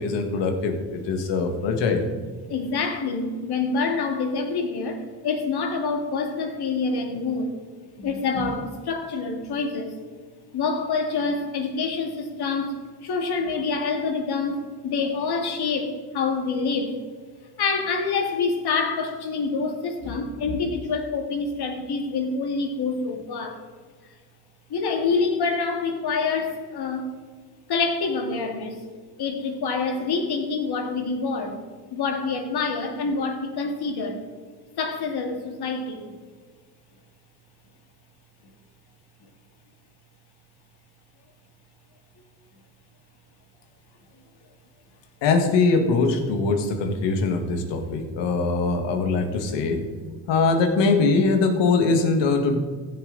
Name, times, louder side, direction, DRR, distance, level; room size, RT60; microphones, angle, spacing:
voice 1, 0.0-2.1 45.2-49.8 50.3-52.6, left 4 dB, 80° left, 5 dB, 1.7 m, -22 dB
voice 2, 2.5-7.5 8.0-9.9 10.5-17.0 17.6-23.6 24.7-27.1 27.7-28.9 29.2-31.6 31.9-34.2 34.8-36.1, left 4 dB, 60° left, 4 dB, 2.1 m, -26 dB
15.0 x 7.2 x 3.9 m, 1.6 s
supercardioid pair, 75°, 42 cm